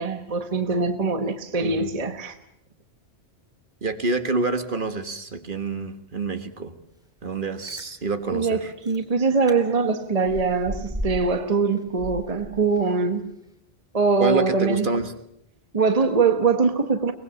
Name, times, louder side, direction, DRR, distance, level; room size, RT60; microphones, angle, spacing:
voice 1, 0.0-2.4 8.3-13.3 13.9-14.9 15.7-17.1, right 4 dB, 35° right, 8 dB, 1.2 m, -22 dB
voice 2, 3.8-6.7 7.2-8.7 14.2-15.1, right 3 dB, 50° right, 9 dB, 1.7 m, -27 dB
Chewing mastication, 7.4-7.9 8.5-8.6 8.8-9.0 9.5-9.6 9.9-11.4 11.7-13.0 13.4-13.5, equal, 5° right, 2.4 m, -35 dB
23.5 x 20.0 x 7.1 m, 0.79 s
omnidirectional pair, 1.1 m